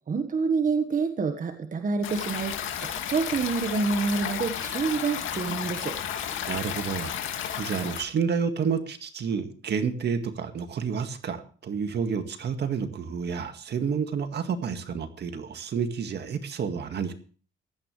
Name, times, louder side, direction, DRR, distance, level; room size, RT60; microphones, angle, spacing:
voice 1, 0.1-6.0, right 4 dB, 40° right, 7 dB, 1.5 m, -27 dB
Stream, 2.0-8.0, left 9 dB, 80° left, 2.3 m, -33 dB
voice 2, 6.5-7.2 7.6-17.1, right 6 dB, 60° right, 8 dB, 1.9 m, -30 dB
16.0 x 13.0 x 3.3 m, 0.40 s
cardioid pair, 90°, 20 cm